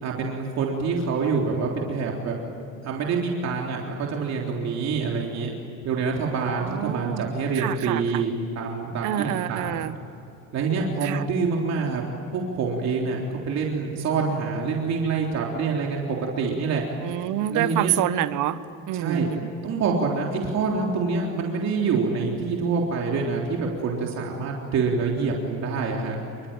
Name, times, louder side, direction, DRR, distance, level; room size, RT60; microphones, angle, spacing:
voice 1, 0.0-2.3 2.8-5.5 5.8-9.9 10.5-12.0 12.3-13.2 13.5-16.8 17.5-17.9 18.8-19.3 19.6-26.2, right 4 dB, 60° right, -1 dB, 3.7 m, -26 dB
voice 2, 6.6-7.3 7.5-8.0 9.0-9.9 11.0-11.2 17.0-18.6 18.9-19.5, right 13 dB, 80° right, 13 dB, 1.2 m, -27 dB
28.0 x 23.0 x 8.9 m, 3.0 s
cardioid pair, 125°, 30 cm